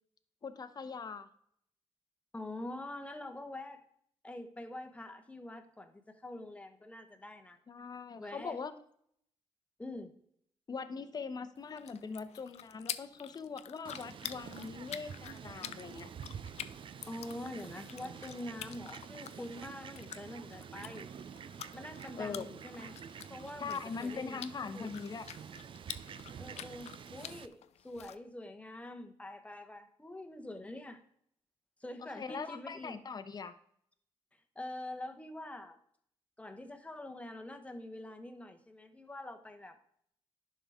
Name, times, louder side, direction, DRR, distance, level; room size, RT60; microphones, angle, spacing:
voice 1, 0.4-1.3 7.7-8.7 10.7-16.1 22.2-22.5 23.6-25.3 32.2-33.5, left 5 dB, 35° left, 10 dB, 0.8 m, -41 dB
voice 2, 2.3-3.8 4.2-7.6 8.2-8.6 9.8-10.1 17.1-21.1 21.7-23.0 23.3-24.9 26.4-31.0 31.8-32.9 34.5-35.8 36.4-39.8, left 1 dB, 10° left, 7 dB, 1.0 m, -45 dB
sound 1, 11.6-28.2, left 10 dB, 85° left, 0.5 m, -48 dB
Fowl, 13.8-27.5, right 7 dB, 50° right, 0.5 m, -48 dB
sound 2, 17.2-24.2, right 3 dB, 85° right, 1.7 m, -64 dB
11.0 x 5.7 x 3.5 m, 0.66 s
cardioid pair, 115°, 11 cm